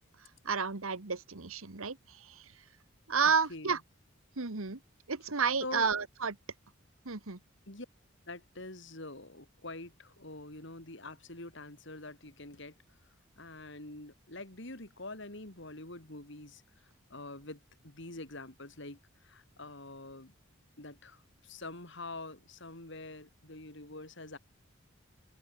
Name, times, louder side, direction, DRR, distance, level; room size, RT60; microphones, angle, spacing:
voice 1, 0.4-2.4 3.1-3.8 4.4-4.8 5.1-6.4 7.0-7.4, right 5 dB, 80° right, 1.5 m, -31 dB
voice 2, 3.2-3.8 5.6-5.9 7.7-7.9 8.3-12.7 13.4-16.6 17.1-20.3 20.8-24.4, left 2 dB, 55° left, 3.3 m, -45 dB
open air
head